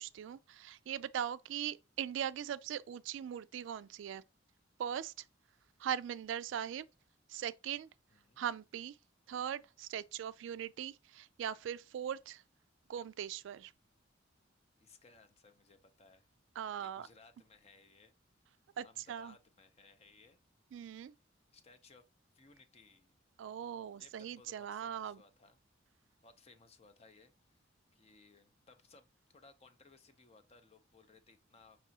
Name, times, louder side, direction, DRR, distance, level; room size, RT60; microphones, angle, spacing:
voice 1, 0.0-4.2 4.8-5.1 5.8-6.8 7.3-7.9 8.4-9.0 9.3-12.4 12.9-13.7 16.6-17.1 18.8-19.3 20.7-21.1 23.4-25.2, right 9 dB, 70° right, 0.3 m, -40 dB
voice 2, 8.1-8.4 14.8-16.3 16.8-18.1 18.8-20.4 21.5-22.1 22.3-23.1 24.0-25.6 26.2-27.6 27.9-31.8, left 3 dB, 35° left, 0.6 m, -62 dB
5.9 x 3.0 x 2.7 m
head